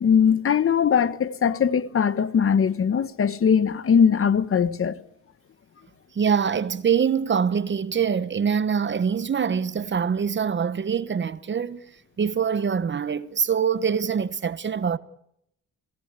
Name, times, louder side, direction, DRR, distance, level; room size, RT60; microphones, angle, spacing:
voice 1, 0.0-5.0, left 7 dB, 45° left, 1.5 m, -20 dB
voice 2, 6.1-11.8 12.2-15.0, right 7 dB, 40° right, 1.2 m, -24 dB
26.5 x 17.5 x 8.3 m
cardioid pair, 90°, 30 cm